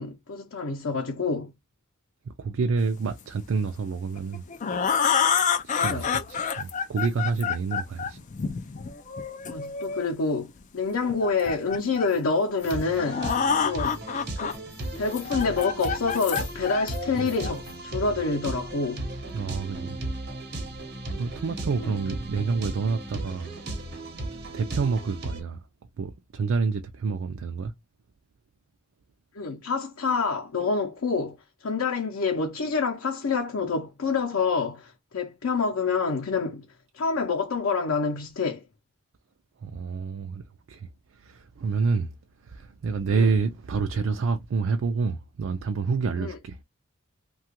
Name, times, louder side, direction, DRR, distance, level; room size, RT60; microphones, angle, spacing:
voice 1, 0.0-1.5 5.7-6.1 9.5-13.3 13.6-14.0 14.4-14.6 15.0-19.1 21.8-21.9 29.4-31.4 31.6-36.7 36.9-38.6 43.1-43.3 46.2-46.4, left 4 dB, 90° left, 0.6 m, -27 dB
voice 2, 2.3-4.4 5.6-8.2 17.2-17.3 19.3-20.0 21.1-23.5 24.5-25.6 26.0-27.7 39.6-40.4 40.7-42.1 42.4-46.6, right 4 dB, 65° right, 0.4 m, -28 dB
sound 1, 4.2-10.1 11.0-12.2 12.7-12.8 13.0-14.5 14.9-17.7, left 6 dB, 35° left, 0.3 m, -28 dB
sound 2, 12.6-25.4, right 1 dB, 50° right, 1.0 m, -36 dB
2.8 x 2.3 x 2.8 m
head